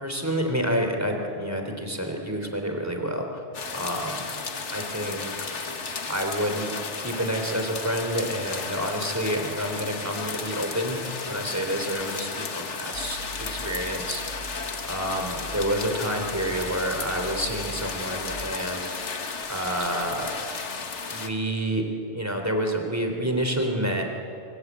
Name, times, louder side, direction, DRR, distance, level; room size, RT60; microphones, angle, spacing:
voice 1, 0.0-3.4 3.7-4.3 4.7-5.7 6.1-6.7 7.0-11.0 11.3-14.6 14.8-19.2 19.5-20.3 21.1-21.9 22.1-24.0, equal, 15° right, 3 dB, 3.5 m, -29 dB
sound 1, 3.5-21.3, left 4 dB, 85° left, 1.8 m, -34 dB
sound 2, 12.9-18.3, right 2 dB, 80° right, 7.7 m, -42 dB
25.5 x 25.0 x 8.4 m, 2.7 s
omnidirectional pair, 1.2 m